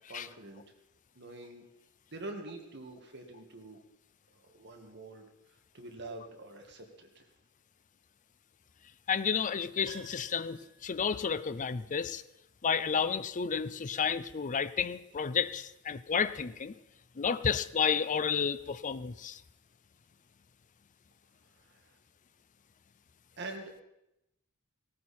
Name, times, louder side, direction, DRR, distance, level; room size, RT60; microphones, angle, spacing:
voice 1, 0.1-0.6 1.2-1.7 2.1-3.8 4.3-7.2 21.6-22.0 23.4-23.7, right 2 dB, 50° right, 3 dB, 1.9 m, -46 dB
voice 2, 9.1-12.2 12.6-16.7 17.2-19.4, left 6 dB, 35° left, 13 dB, 0.5 m, -31 dB
Piano, 9.8-11.9 12.2-12.3, right 2 dB, 25° right, 6.7 m, -53 dB
18.0 x 13.5 x 4.3 m, 0.88 s
head